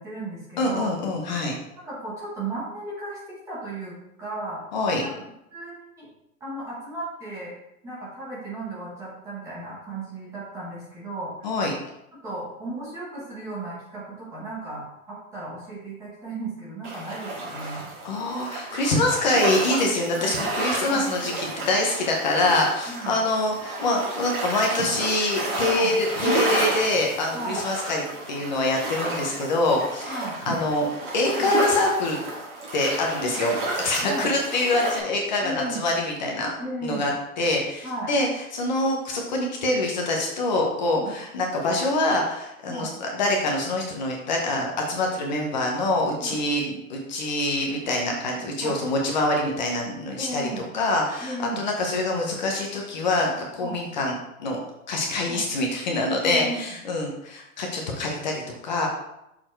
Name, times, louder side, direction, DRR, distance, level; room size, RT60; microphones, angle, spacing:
voice 1, 0.0-0.9 1.8-4.6 5.0-5.2 5.5-6.1 6.4-7.5 7.8-11.3 12.2-17.8 20.2-20.4 20.8-21.1 22.9-23.2 25.7-26.0 27.3-27.6 30.1-30.4 34.0-34.3 35.4-35.9 36.6-37.1 37.8-38.1 40.9-41.1 42.7-42.9 46.2-46.4 48.6-48.8 50.1-50.6 51.2-51.6 53.6-53.8 55.3-55.5 56.2-56.6, right 2 dB, 5° right, -7 dB, 1.0 m, -35 dB
voice 2, 0.6-1.6 4.7-5.0 11.4-11.7 18.0-30.9 31.1-32.2 32.7-36.5 36.8-37.1 37.4-54.6 54.9-58.9, left 2 dB, 30° left, 0 dB, 0.9 m, -25 dB
sound 1, 16.8-35.0, right 2 dB, 35° right, 1.9 m, -31 dB
6.8 x 4.3 x 4.5 m, 0.86 s
hypercardioid pair, 175°, 43 cm